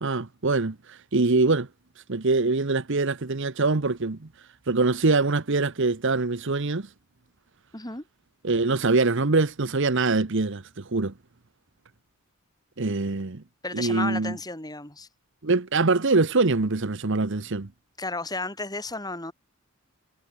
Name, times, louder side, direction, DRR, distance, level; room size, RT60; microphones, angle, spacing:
voice 1, 0.0-1.7 2.1-4.3 4.7-6.9 8.4-11.1 12.8-13.4 13.7-14.4 15.4-17.7, right 3 dB, 55° right, 1.0 m, -24 dB
voice 2, 7.7-8.0 13.6-15.1 18.0-19.3, left 2 dB, 15° left, 5.9 m, -33 dB
head